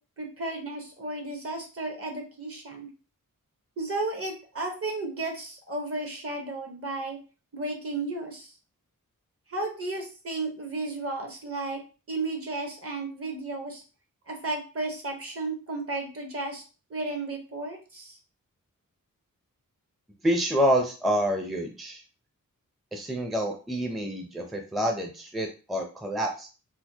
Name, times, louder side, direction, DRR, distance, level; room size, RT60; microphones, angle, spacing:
voice 1, 0.2-2.9 3.8-7.2 7.5-8.5 9.5-11.8 12.1-13.8 14.3-16.6 16.9-18.2, right 2 dB, 45° right, 2 dB, 1.1 m, -33 dB
voice 2, 20.2-22.0 22.9-26.5, equal, ahead, 1 dB, 0.5 m, -27 dB
4.2 x 2.2 x 2.8 m, 0.35 s
wide cardioid pair, 85°, 33 cm